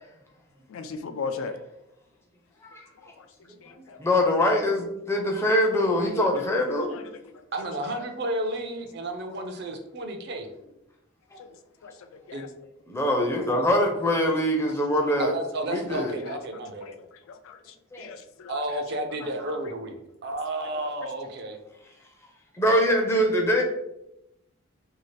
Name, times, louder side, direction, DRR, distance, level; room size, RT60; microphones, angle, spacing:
voice 1, 0.7-1.6 3.2-3.3 3.6-4.0 6.4-6.5 6.7-7.0 7.8-8.0 9.4-9.5 11.4-11.5 11.8-11.9 12.3-12.5 16.2-16.4 16.8-16.9 17.3-18.8, left 5 dB, 80° left, 7 dB, 0.3 m, -38 dB
voice 2, 4.0-7.1 11.3-11.4 12.9-15.3 15.7-16.1 17.9-18.1 22.6-23.6, left 1 dB, 15° left, 1 dB, 0.4 m, -23 dB
voice 3, 7.5-10.5 12.3-12.5 15.2-16.9 18.5-21.6 22.7-22.8, right 1 dB, 55° right, 4 dB, 0.5 m, -32 dB
2.7 x 2.4 x 3.1 m, 0.85 s
head